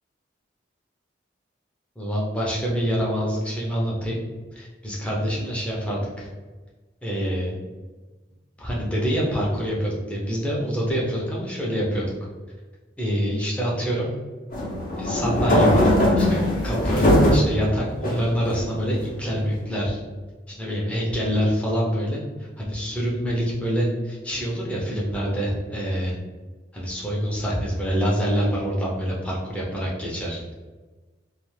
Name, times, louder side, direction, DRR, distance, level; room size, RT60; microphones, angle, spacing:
voice 1, 2.0-4.2 4.5-6.3 7.0-7.6 8.6-12.1 13.0-14.1 15.0-20.0 20.5-26.1 26.7-30.5, equal, 5° left, -5 dB, 0.6 m, -26 dB
sound 1, 14.5-17.5 18.0-18.9, left 1 dB, 45° left, 0.6 m, -20 dB
2.4 x 2.3 x 3.1 m, 1.3 s
head